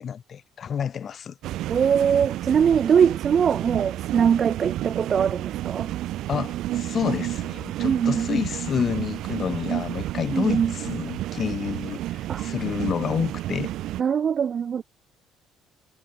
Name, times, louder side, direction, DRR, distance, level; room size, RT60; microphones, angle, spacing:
voice 1, 0.0-1.3 6.3-13.7, left 8 dB, 30° left, 2.7 m, -29 dB
sound 1, 1.4-14.0, right 14 dB, 55° right, 2.1 m, -31 dB
voice 2, 1.7-5.9 7.8-8.4 10.3-10.7 12.3-12.5 14.0-14.8, right 7 dB, 30° right, 1.0 m, -22 dB
cardioid pair, 180°, 0 cm